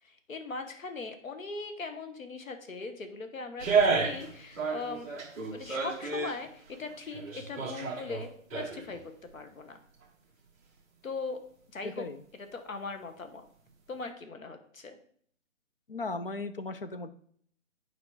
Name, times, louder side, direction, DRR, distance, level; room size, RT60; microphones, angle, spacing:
voice 1, 0.0-5.1 5.5-8.3 8.5-9.8 11.0-11.4 11.7-12.1 12.3-13.5 13.9-15.0, left 3 dB, 80° left, 7 dB, 1.4 m, -40 dB
sound 1, 3.6-4.3 4.6-6.3 6.9-9.0 9.3-9.4, right 4 dB, 10° right, 0.9 m, -30 dB
voice 2, 11.8-12.2 15.9-17.1, left 3 dB, 45° left, 10 dB, 0.6 m, -37 dB
8.3 x 5.0 x 4.8 m, 0.62 s
hypercardioid pair, 175°, 40 cm